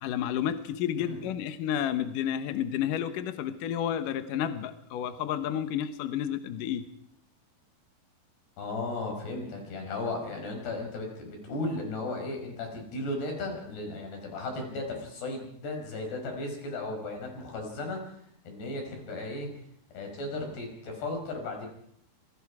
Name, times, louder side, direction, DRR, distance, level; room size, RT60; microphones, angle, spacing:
voice 1, 0.0-6.9, left 10 dB, 65° left, 9 dB, 2.4 m, -31 dB
voice 2, 8.6-18.1 18.5-19.5 19.9-21.7, left 2 dB, 85° left, 3 dB, 7.4 m, -35 dB
28.0 x 22.0 x 4.9 m, 0.69 s
omnidirectional pair, 4.6 m